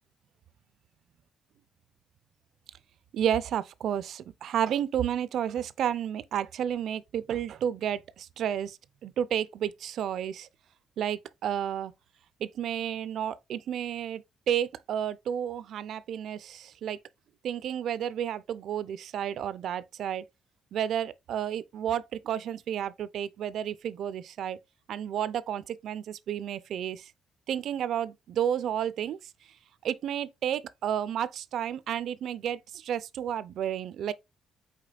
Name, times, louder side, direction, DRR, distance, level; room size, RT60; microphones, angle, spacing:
voice 1, 3.1-8.8 9.0-10.5 11.0-11.9 12.4-17.0 17.4-20.2 20.7-24.6 24.9-27.1 27.5-29.2 29.8-34.1, right 9 dB, 70° right, 0.3 m, -31 dB
5.0 x 4.2 x 2.3 m
cardioid pair, 110°, 0 cm